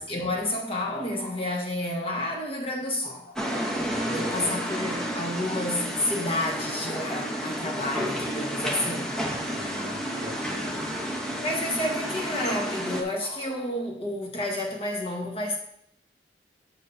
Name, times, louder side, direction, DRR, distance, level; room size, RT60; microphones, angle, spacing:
voice 1, 0.0-3.4 4.1-9.6 11.4-15.6, left 1 dB, 30° left, -1 dB, 1.4 m, -30 dB
sound 1, 3.4-13.0, equal, 5° left, 0.9 m, -31 dB
voice 2, 3.9-4.7 9.5-11.1, equal, 45° right, 0 dB, 1.2 m, -41 dB
7.9 x 7.2 x 2.7 m, 0.71 s
head